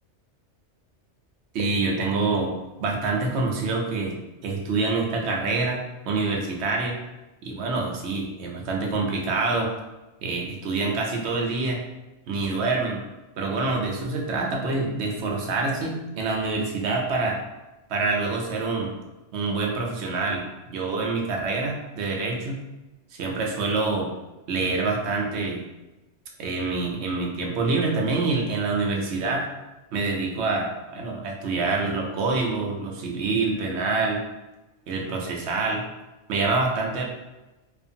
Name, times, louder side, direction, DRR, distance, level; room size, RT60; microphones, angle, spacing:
voice 1, 1.5-4.1 4.4-5.8 6.1-7.0 7.4-9.7 10.2-11.8 12.3-13.0 13.4-17.4 17.9-18.9 19.3-20.5 20.7-22.6 23.1-24.1 24.5-25.6 26.4-29.5 29.9-34.2 34.9-35.8 36.3-37.0, right 3 dB, 70° right, 0 dB, 0.8 m, -26 dB
2.5 x 2.4 x 2.6 m, 1.0 s
omnidirectional pair, 1.2 m